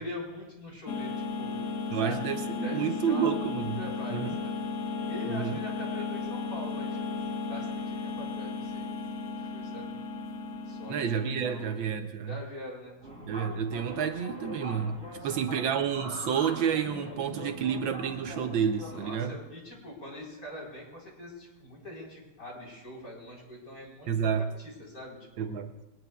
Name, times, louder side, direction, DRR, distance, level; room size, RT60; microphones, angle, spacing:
voice 1, 0.0-1.6 1.9-2.2 2.6-4.6 5.1-7.2 7.5-8.9 9.2-9.9 10.7-11.8 12.3-13.5 15.2-15.8 18.9-24.3 24.6-25.6, left 1 dB, 40° left, -3 dB, 4.7 m, -43 dB
sound 1, 0.9-11.7, left 4 dB, 60° left, 1.3 m, -35 dB
voice 2, 1.9-3.8 4.1-4.3 5.3-5.6 10.9-12.4 13.3-15.0 15.2-19.4 24.1-24.5 25.4-25.7, right 7 dB, 70° right, 7 dB, 1.4 m, -30 dB
sound 2, 13.0-19.0, equal, 30° right, 6.9 m, -42 dB
22.0 x 20.0 x 2.3 m, 1.1 s
omnidirectional pair, 2.3 m